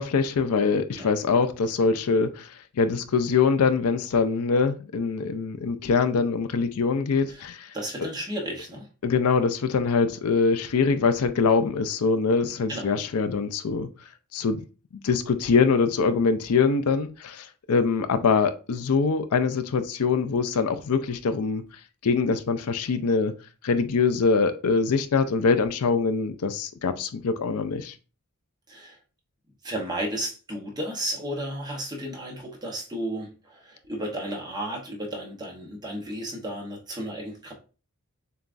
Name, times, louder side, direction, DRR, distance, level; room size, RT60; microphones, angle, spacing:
voice 1, 0.0-2.5 2.8-7.7 9.0-13.9 14.3-14.6 15.0-21.6 22.0-23.3 23.6-27.9, left 5 dB, 80° left, 0.4 m, -23 dB
voice 2, 7.7-8.9 12.7-12.9 28.7-29.0 29.6-37.5, right 1 dB, 20° right, 0.9 m, -33 dB
6.8 x 2.3 x 2.5 m
head